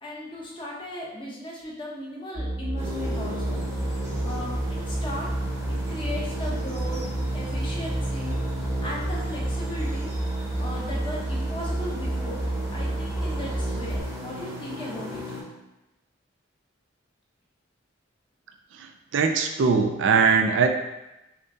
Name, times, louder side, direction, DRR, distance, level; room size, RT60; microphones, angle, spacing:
voice 1, 0.0-3.6 4.2-5.3 5.7-7.0 7.3-8.3 8.8-10.1 10.6-12.4 12.7-15.2, left 1 dB, 25° left, -4 dB, 0.8 m, -37 dB
sound 1, 2.3-14.0, right 1 dB, 55° left, 0.9 m, -30 dB
sound 2, 2.8-15.4, equal, 15° right, 0.8 m, -37 dB
voice 2, 19.1-20.7, right 5 dB, 70° right, 5 dB, 0.4 m, -20 dB
6.5 x 2.2 x 2.7 m, 0.96 s
head